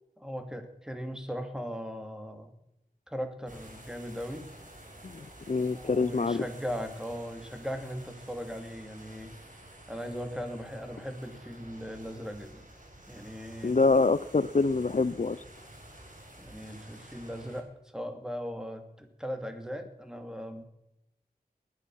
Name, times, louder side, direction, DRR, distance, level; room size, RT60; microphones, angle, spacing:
voice 1, 0.2-2.5 3.1-4.5 5.7-9.3 9.9-12.6 13.1-13.8 16.4-20.7, equal, 5° right, 6 dB, 2.7 m, -38 dB
sound 1, 3.5-17.6, right 1 dB, 50° right, 5.1 m, -51 dB
voice 2, 5.0-6.4 13.6-15.4, left 3 dB, 50° left, 15 dB, 0.6 m, -26 dB
19.5 x 11.0 x 6.3 m, 0.86 s
wide cardioid pair, 45°, 16 cm